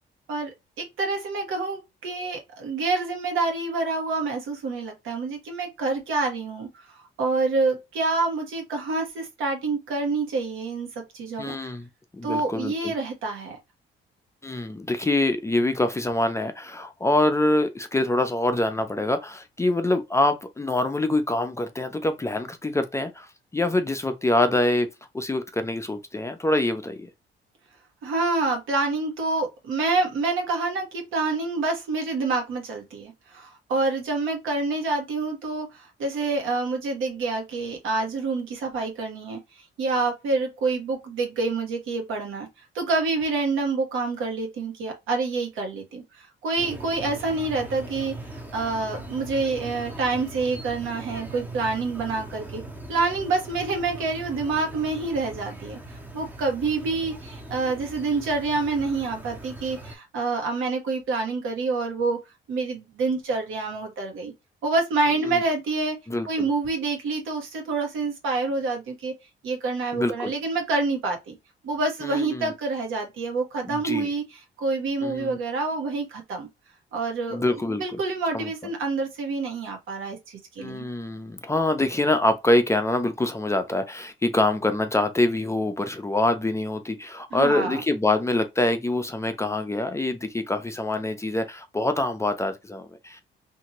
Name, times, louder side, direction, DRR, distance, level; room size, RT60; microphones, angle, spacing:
voice 1, 0.8-6.7 7.2-10.9 11.1-11.7 12.2-13.6 28.0-39.4 39.8-42.5 42.7-52.6 52.9-55.8 56.1-62.2 62.5-64.3 64.6-66.0 66.3-69.1 69.4-71.3 71.6-76.5 76.9-80.8 87.3-87.8, right 3 dB, 85° right, 1.2 m, -27 dB
voice 2, 11.4-12.9 14.4-24.9 25.1-27.1 65.2-65.4 66.1-66.5 69.9-70.3 72.0-72.5 73.6-74.1 75.0-75.4 77.3-78.0 78.3-78.5 80.6-93.2, left 2 dB, 15° left, 0.5 m, -25 dB
sound 1, 46.6-60.0, right 2 dB, 10° right, 0.8 m, -40 dB
2.8 x 2.6 x 2.8 m
cardioid pair, 90°, 20 cm